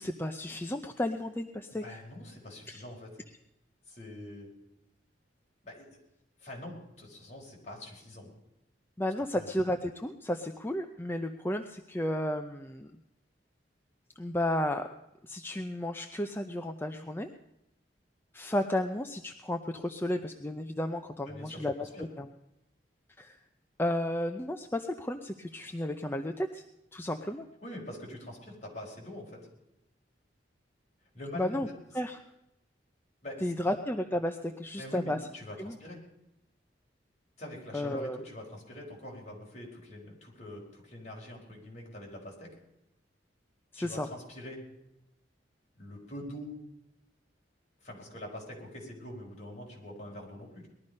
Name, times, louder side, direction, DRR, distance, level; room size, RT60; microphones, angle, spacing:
voice 1, 0.0-1.8 2.7-2.8 9.0-12.9 14.2-14.9 15.2-17.3 18.3-21.7 22.0-22.3 23.2-23.4 23.8-26.6 26.9-27.4 31.3-31.7 31.9-32.2 33.4-35.2 35.6-35.8 37.7-38.2 43.7-44.1, left 1 dB, 10° left, 5 dB, 0.6 m, -33 dB
voice 2, 1.8-3.2 3.9-4.5 5.6-6.0 6.4-8.3 9.3-9.5 21.3-22.0 27.6-29.5 31.1-31.6 33.2-33.7 34.8-36.0 37.4-42.5 43.7-44.6 45.7-46.5 47.8-50.7, left 1 dB, 40° left, -2 dB, 4.7 m, -44 dB
20.0 x 12.5 x 5.4 m, 0.89 s
head